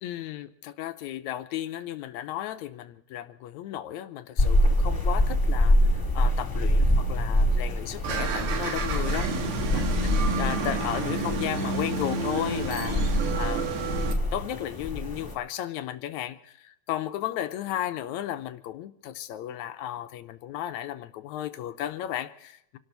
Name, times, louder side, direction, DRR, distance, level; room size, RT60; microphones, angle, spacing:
voice 1, 0.0-9.9 10.4-13.9 14.3-22.8, left 12 dB, 80° left, 10 dB, 1.7 m, -34 dB
sound 1, 4.4-15.3, equal, 10° left, 1.5 m, -25 dB
sound 2, 8.0-14.1, right 4 dB, 65° right, 2.9 m, -30 dB
27.0 x 13.0 x 4.0 m, 0.77 s
omnidirectional pair, 4.1 m